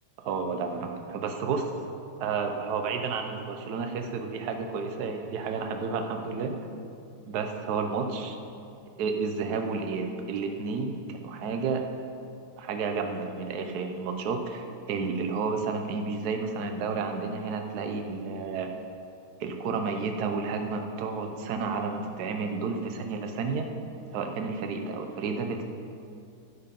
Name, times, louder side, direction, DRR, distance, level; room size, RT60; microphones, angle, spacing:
voice 1, 0.2-1.7 2.2-6.6 7.3-8.4 9.0-11.8 12.6-18.7 19.4-23.7 24.1-25.6, right 4 dB, 60° right, 5 dB, 1.2 m, -31 dB
12.5 x 8.2 x 5.3 m, 2.5 s
omnidirectional pair, 2.3 m